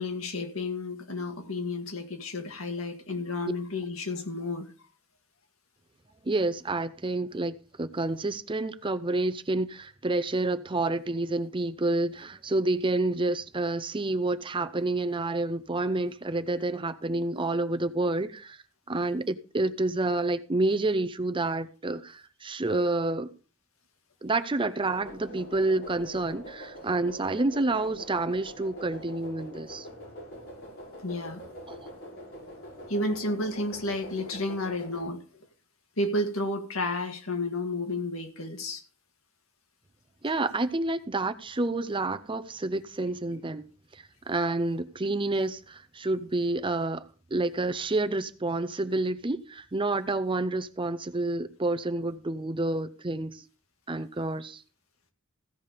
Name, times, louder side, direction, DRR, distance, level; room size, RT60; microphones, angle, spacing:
voice 1, 0.0-4.7 31.0-31.4 32.9-35.2 36.0-38.8, left 2 dB, 85° left, 2.1 m, -31 dB
voice 2, 6.2-18.6 18.9-23.3 24.2-29.9 31.7-31.9 40.2-47.0 47.3-53.4 53.9-54.6, right 2 dB, 25° right, 0.6 m, -29 dB
sound 1, 24.8-35.0, equal, 60° left, 6.2 m, -44 dB
15.5 x 5.3 x 6.6 m
head